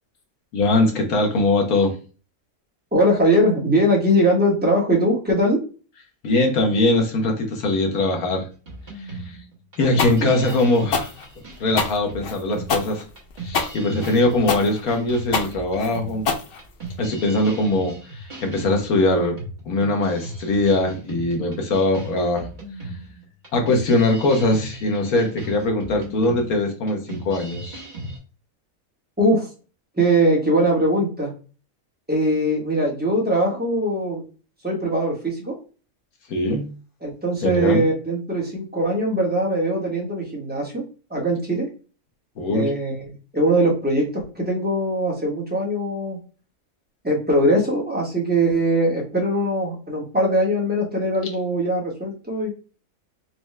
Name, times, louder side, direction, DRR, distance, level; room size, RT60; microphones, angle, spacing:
voice 1, 0.5-1.9 6.2-8.5 9.1-9.2 9.8-11.1 11.6-13.0 13.4-16.2 17.0-19.4 19.7-22.5 23.5-27.8 36.3-36.7 37.4-37.8 42.4-42.7, left 2 dB, 80° left, 3 dB, 1.4 m, -21 dB
voice 2, 2.9-5.6 10.2-10.3 29.2-29.5 30.0-31.3 32.1-34.2 34.6-35.6 37.0-40.8 41.1-41.7 42.5-46.2 47.0-52.5, right 1 dB, 10° right, -2 dB, 1.0 m, -21 dB
sound 1, 8.7-28.2, right 1 dB, 35° right, 1.3 m, -37 dB
sound 2, 10.0-17.1, left 5 dB, 60° left, 0.6 m, -26 dB
4.3 x 2.3 x 3.1 m, 0.36 s
omnidirectional pair, 1.5 m